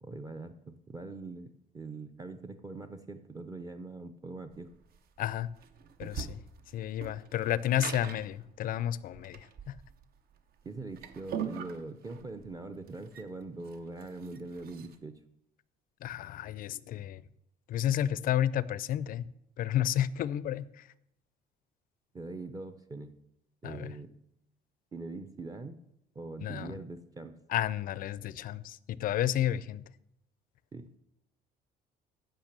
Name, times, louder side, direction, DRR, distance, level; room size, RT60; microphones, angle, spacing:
voice 1, 0.0-4.7 10.6-15.2 22.1-23.2 23.6-24.1 24.9-25.8 26.1-27.4 30.7-30.9, right 3 dB, 20° right, 0.6 m, -42 dB
sound 1, 4.5-15.0, right 7 dB, 60° right, 0.8 m, -43 dB
voice 2, 5.2-5.5 6.0-6.4 6.7-9.7 16.0-17.2 17.7-19.3 19.6-20.6 23.6-23.9 26.4-26.7 27.5-29.8, left 11 dB, 55° left, 0.4 m, -31 dB
9.0 x 5.8 x 6.7 m
cardioid pair, 110°, 17 cm